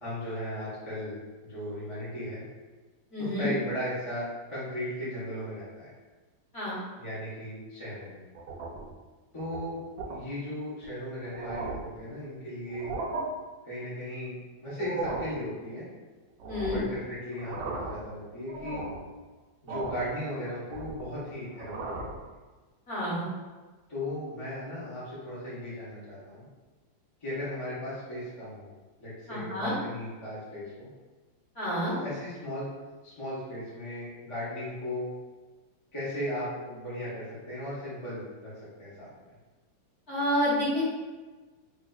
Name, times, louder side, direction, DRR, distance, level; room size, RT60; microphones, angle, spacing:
voice 1, 0.0-2.4 3.2-5.9 7.0-8.2 9.3-9.8 10.1-12.9 13.6-15.8 16.7-18.9 19.6-22.2 23.9-26.4 27.2-28.7 29.0-30.9 31.8-32.7 33.0-35.1 35.9-38.5 38.8-39.1, left 1 dB, 25° left, -10 dB, 0.7 m, -36 dB
voice 2, 3.1-3.5 6.5-6.8 16.5-16.8 22.9-23.3 29.3-29.7 31.5-31.9 40.1-40.9, left 1 dB, 40° left, -11 dB, 1.2 m, -29 dB
sound 1, 8.4-8.9 9.4-9.6 10.0-10.2 10.8-10.9 11.2-11.9 12.7-13.3 14.7-15.4 16.4-17.0 17.3-18.1 18.5-19.1 19.7-20.1 20.5-21.2 21.5-22.2, right 3 dB, 75° right, 1.2 m, -36 dB
3.8 x 2.7 x 2.3 m, 1.3 s
omnidirectional pair, 2.1 m